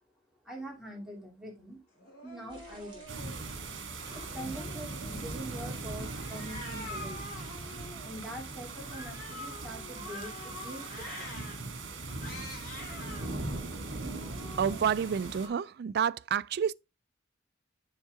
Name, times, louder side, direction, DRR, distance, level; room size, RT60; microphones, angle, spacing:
voice 1, 0.4-1.8 2.2-3.1 4.1-7.3 8.0-11.3, right 1 dB, ahead, 2.6 m, -44 dB
Cat, 2.0-3.4 3.9-5.3 5.9-8.2 8.7-11.6 12.1-13.3 13.8-15.6, left 1 dB, 50° left, 3.3 m, -46 dB
sound 1, 2.5-7.9, right 2 dB, 25° right, 4.0 m, -55 dB
sound 2, 3.1-15.5, right 3 dB, 75° right, 1.9 m, -40 dB
voice 2, 14.6-16.7, right 7 dB, 55° right, 0.3 m, -29 dB
7.3 x 6.4 x 3.5 m
head